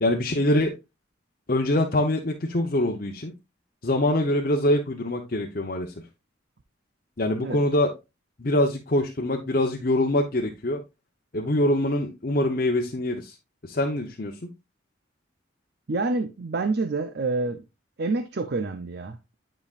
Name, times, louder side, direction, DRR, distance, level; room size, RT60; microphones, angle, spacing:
voice 1, 0.0-0.7 1.5-3.3 3.8-5.9 7.2-7.9 8.4-10.8 11.3-13.3 13.6-14.3, left 1 dB, 45° left, 0.8 m, -24 dB
voice 2, 15.9-17.6 18.0-19.3, right 3 dB, 55° right, 0.6 m, -27 dB
9.7 x 5.2 x 2.5 m
head